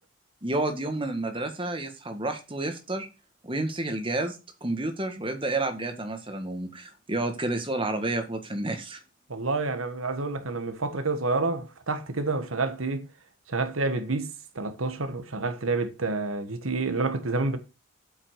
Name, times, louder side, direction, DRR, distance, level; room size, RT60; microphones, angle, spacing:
voice 1, 0.4-3.1 3.4-9.0, right 2 dB, 25° right, 1.6 m, -30 dB
voice 2, 9.3-13.1 13.5-17.6, right 3 dB, 75° right, 1.4 m, -29 dB
8.3 x 6.0 x 6.4 m
head